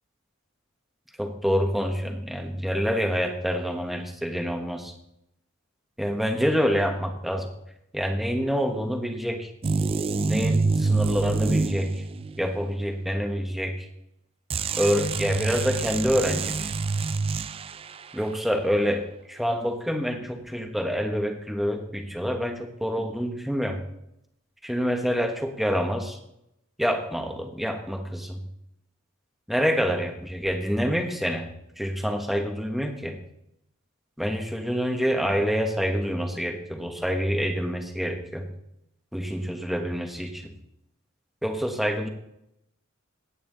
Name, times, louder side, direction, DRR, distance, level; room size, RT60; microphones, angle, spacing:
voice 1, 1.2-4.9 6.0-7.5 7.9-9.5 10.2-12.0 12.4-13.9 14.8-16.5 18.1-19.0 19.3-23.8 24.6-26.2 26.8-28.4 29.5-31.5 31.8-33.2 34.2-38.5 39.1-40.5 41.4-42.1, equal, ahead, 4 dB, 1.3 m, -27 dB
sound 1, 9.6-12.5 14.5-17.9, right 3 dB, 25° right, 0.4 m, -26 dB
16.5 x 9.3 x 4.0 m, 0.81 s
head